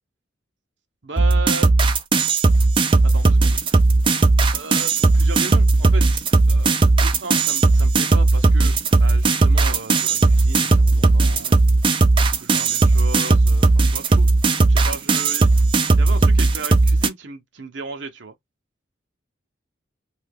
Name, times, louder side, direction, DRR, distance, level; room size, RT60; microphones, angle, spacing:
voice 1, 1.0-1.7 3.0-3.6 4.5-6.7 7.0-11.6 12.3-14.3 14.7-15.5 16.0-18.4, right 3 dB, 65° right, 0.8 m, -35 dB
sound 1, 1.2-17.1, right 3 dB, 25° right, 0.4 m, -16 dB
2.7 x 2.6 x 3.5 m
head